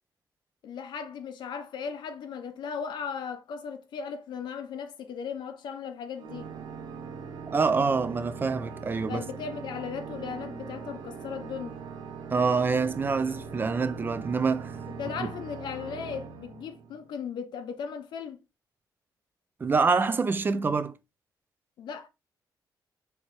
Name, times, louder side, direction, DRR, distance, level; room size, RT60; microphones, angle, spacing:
voice 1, 0.6-6.5 9.1-11.8 15.0-18.4 21.8-22.1, left 6 dB, 75° left, 0.7 m, -37 dB
Organ, 6.2-17.1, right 5 dB, 80° right, 0.8 m, -41 dB
voice 2, 7.5-9.2 12.3-14.8 15.2-15.3 19.6-20.9, right 4 dB, 25° right, 0.4 m, -26 dB
4.3 x 3.1 x 3.0 m
cardioid pair, 130°, 8 cm